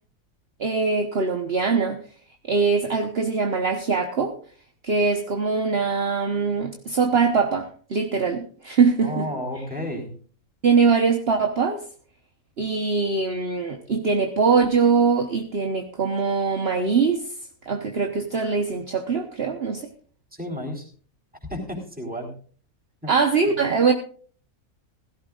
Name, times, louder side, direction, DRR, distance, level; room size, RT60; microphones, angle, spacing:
voice 1, 0.6-2.0 2.5-4.3 4.8-9.3 10.6-11.8 12.6-17.3 17.7-19.9 23.1-23.9, right 5 dB, 45° right, 5 dB, 1.3 m, -22 dB
voice 2, 9.0-10.1 20.3-20.9 21.5-22.3 23.0-23.1 23.5-23.6, equal, 5° right, 1 dB, 4.0 m, -32 dB
17.0 x 16.0 x 2.5 m, 0.43 s
omnidirectional pair, 1.5 m